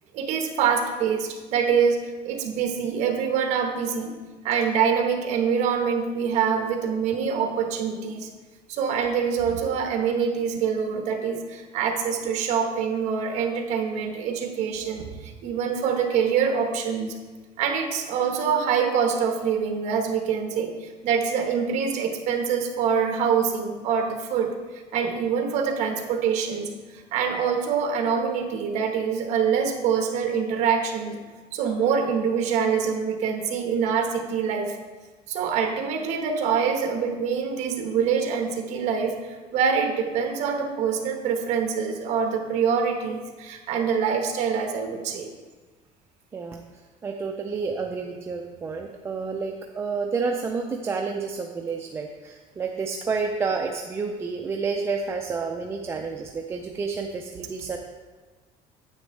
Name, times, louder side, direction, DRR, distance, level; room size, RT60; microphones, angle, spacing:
voice 1, 0.1-2.0 2.2-4.1 4.4-8.3 8.7-15.1 15.4-17.2 17.6-26.7 27.1-31.2 31.5-34.8 35.3-45.3, right 6 dB, 55° right, 4 dB, 1.2 m, -25 dB
voice 2, 47.0-57.8, right 4 dB, 20° right, 2 dB, 0.4 m, -30 dB
9.5 x 7.7 x 3.2 m, 1.3 s
cardioid pair, 165°, 14 cm